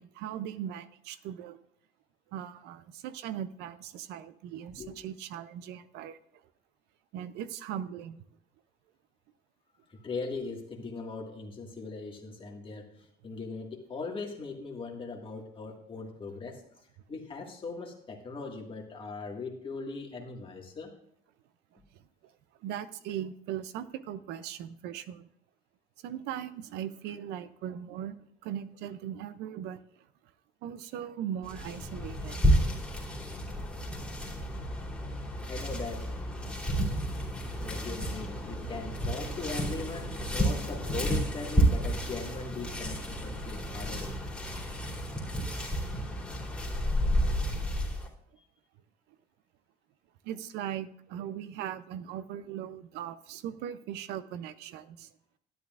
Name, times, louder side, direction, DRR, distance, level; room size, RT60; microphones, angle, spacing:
voice 1, 0.0-1.6 2.3-6.2 7.1-8.2 16.0-16.1 21.7-22.3 22.6-25.3 26.0-28.2 28.4-30.1 30.6-32.4 36.4-36.7 47.5-47.7 50.2-55.1, right 10 dB, 90° right, 14 dB, 0.5 m, -39 dB
voice 2, 9.9-16.6 17.1-20.9 35.5-36.1 37.6-44.4 48.4-48.5, left 4 dB, 30° left, 0 dB, 1.8 m, -40 dB
sound 1, 31.4-48.1, equal, 5° left, 2.9 m, -31 dB
12.5 x 10.5 x 2.5 m, 0.69 s
cardioid pair, 110°, 17 cm